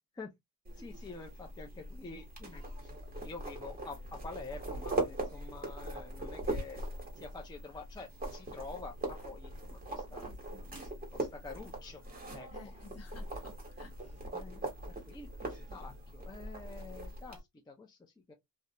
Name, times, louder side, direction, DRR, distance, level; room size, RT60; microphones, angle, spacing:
sound 1, 0.6-17.4, right 2 dB, 25° right, 1.2 m, -41 dB
voice 1, 0.8-2.9 3.2-6.8 7.2-10.3 10.8-12.0 12.3-12.7 14.3-17.4 17.7-18.3, left 3 dB, 10° left, 0.4 m, -48 dB
voice 2, 10.1-10.7 12.5-14.2, left 3 dB, 40° left, 1.0 m, -55 dB
2.4 x 2.1 x 2.8 m
cardioid pair, 110°, 37 cm